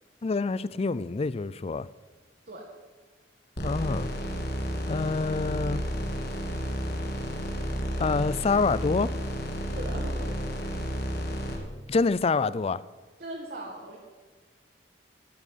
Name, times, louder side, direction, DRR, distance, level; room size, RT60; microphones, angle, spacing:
voice 1, 0.2-1.9 3.6-4.1 4.9-5.8 8.0-9.1 11.9-12.8, left 4 dB, 35° left, 0.4 m, -26 dB
sound 1, 3.6-11.6, equal, 60° left, 2.6 m, -31 dB
voice 2, 9.7-10.4 13.2-14.0, right 1 dB, 55° right, 1.9 m, -39 dB
13.5 x 7.2 x 9.4 m
head